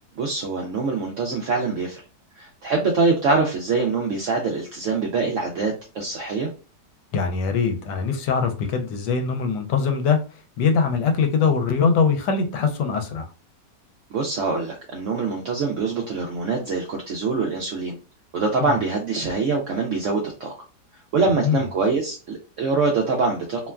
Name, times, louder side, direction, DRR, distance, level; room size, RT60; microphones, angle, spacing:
voice 1, 0.2-2.0 2.4-6.5 14.1-18.0 18.3-20.5 21.1-23.7, right 4 dB, 75° right, 0.7 m, -24 dB
voice 2, 7.1-10.2 10.6-13.3 18.6-18.7 21.4-21.6, left 5 dB, 80° left, 1.2 m, -22 dB
2.9 x 2.2 x 2.3 m
omnidirectional pair, 1.9 m